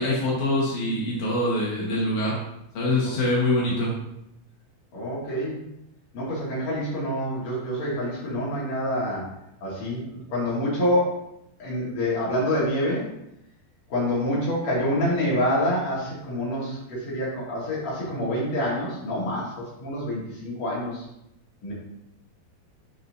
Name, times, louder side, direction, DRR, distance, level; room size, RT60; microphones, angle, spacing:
voice 1, 0.0-2.4 2.7-3.9, left 1 dB, 80° left, -5 dB, 1.7 m, -24 dB
voice 2, 4.9-5.6 6.1-9.3 9.6-11.3 11.6-13.1 13.9-21.1 21.6-21.7, left 1 dB, 45° left, -6 dB, 2.6 m, -27 dB
11.0 x 4.2 x 2.6 m, 0.81 s
omnidirectional pair, 5.6 m